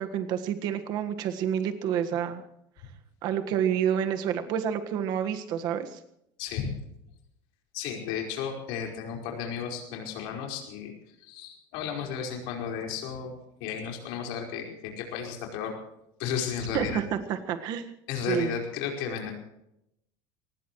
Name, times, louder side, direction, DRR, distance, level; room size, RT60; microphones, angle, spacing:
voice 1, 0.0-2.4 3.2-6.0 16.7-17.0 17.3-17.8 18.3-18.5, right 9 dB, 40° right, 8 dB, 1.6 m, -28 dB
voice 2, 6.4-6.7 7.7-10.9 11.2-13.3 13.6-15.7 16.2-17.0 18.1-19.3, left 7 dB, 55° left, 1 dB, 4.9 m, -33 dB
23.0 x 20.0 x 3.2 m, 0.79 s
cardioid pair, 180°, 11 cm